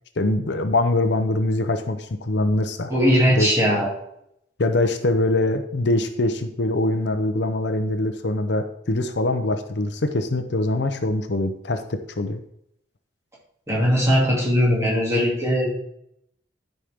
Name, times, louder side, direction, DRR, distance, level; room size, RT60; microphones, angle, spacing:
voice 1, 0.2-2.9 3.3-3.5 4.6-12.4, left 2 dB, 65° left, 8 dB, 0.7 m, -23 dB
voice 2, 2.9-3.9 13.7-15.8, equal, 15° right, -5 dB, 2.6 m, -19 dB
11.5 x 5.4 x 3.6 m, 0.76 s
head